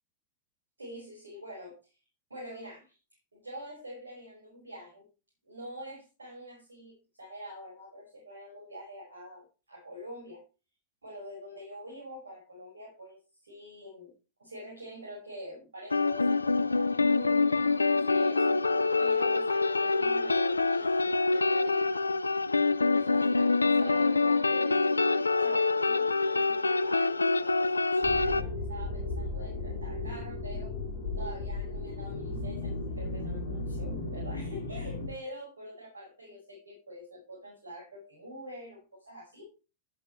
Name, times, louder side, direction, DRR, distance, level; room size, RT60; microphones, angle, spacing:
voice 1, 0.8-2.0 2.3-3.0 3.3-5.1 5.4-10.4 11.0-14.1 14.4-18.6 19.0-21.9 22.9-24.8 25.4-30.7 31.2-39.5, equal, 75° right, -2 dB, 5.1 m, -45 dB
sound 1, 15.9-28.4, left 3 dB, 80° left, 0.5 m, -26 dB
sound 2, 28.0-35.1, left 2 dB, 55° left, 2.4 m, -35 dB
11.5 x 11.0 x 3.1 m, 0.31 s
figure-of-eight pair, 90°, 0 cm